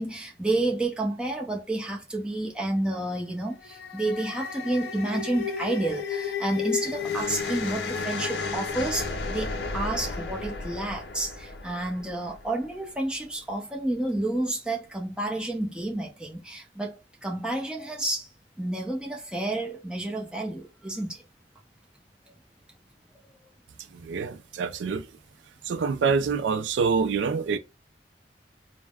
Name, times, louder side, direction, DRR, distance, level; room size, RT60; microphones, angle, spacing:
voice 1, 0.0-18.3 18.6-21.2, right 2 dB, 5° right, 0.6 m, -30 dB
sound 1, 3.5-12.8, left 4 dB, 65° left, 0.5 m, -33 dB
voice 2, 23.9-25.1 25.6-27.6, right 5 dB, 80° right, 0.3 m, -26 dB
3.3 x 2.1 x 2.3 m
head